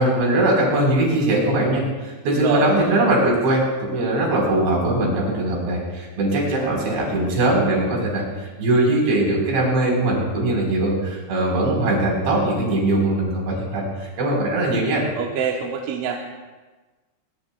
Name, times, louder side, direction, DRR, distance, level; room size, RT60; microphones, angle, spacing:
voice 1, 0.0-15.1, right 1 dB, 60° right, -2 dB, 6.4 m, -21 dB
voice 2, 2.2-2.7 15.2-16.2, right 7 dB, 80° right, 0 dB, 3.2 m, -25 dB
22.5 x 22.0 x 2.3 m, 1.3 s
omnidirectional pair, 5.9 m